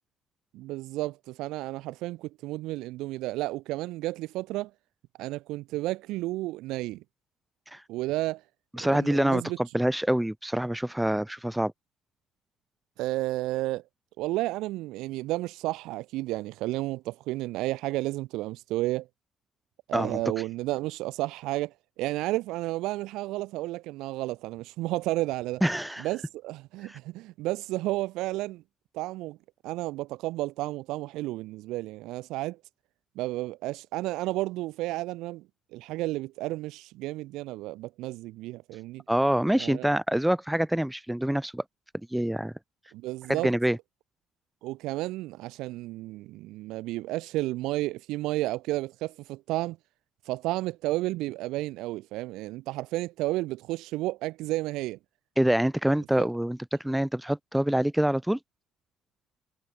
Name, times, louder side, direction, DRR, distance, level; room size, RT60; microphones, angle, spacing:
voice 1, 0.5-4.7 5.2-7.0 7.9-8.4 8.8-9.6 13.0-13.8 14.2-19.1 19.9-25.6 26.0-28.6 28.9-29.4 29.6-32.6 33.1-35.4 35.7-39.0 39.6-39.9 42.9-43.5 44.6-49.8 50.2-55.0 56.2-56.3, right 18 dB, 65° right, 1.4 m, -32 dB
voice 2, 8.7-11.7 19.9-20.2 25.6-26.1 26.9-27.0 39.1-41.6 42.1-42.5 43.3-43.8 55.4-58.4, right 1 dB, 5° right, 2.2 m, -26 dB
figure-of-eight pair, 45°, 0 cm